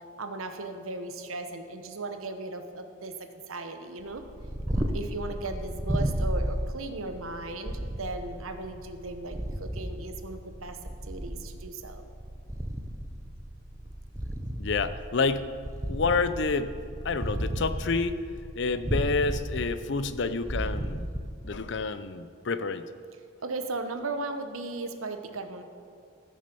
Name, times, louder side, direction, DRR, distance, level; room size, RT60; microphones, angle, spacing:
voice 1, 0.2-3.1 3.5-4.2 4.8-10.8 11.1-12.0 23.4-25.6, right 2 dB, 80° right, 7 dB, 1.0 m, -37 dB
Purr, 4.2-21.9, equal, 15° right, 0.7 m, -34 dB
voice 2, 14.6-15.5 15.9-16.7 17.0-18.2 18.6-21.1 21.4-22.8, left 4 dB, 55° left, 12 dB, 0.5 m, -28 dB
14.5 x 6.4 x 6.9 m, 2.3 s
head